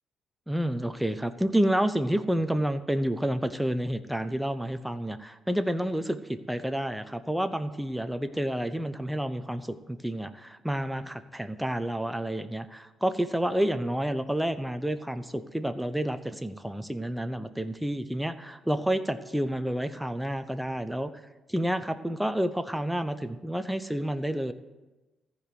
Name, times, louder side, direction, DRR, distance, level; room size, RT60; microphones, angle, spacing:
voice 1, 0.5-21.1 21.5-24.5, right 1 dB, 5° right, 9 dB, 0.8 m, -29 dB
14.5 x 5.1 x 9.5 m, 1.1 s
cardioid pair, 90°, 0 cm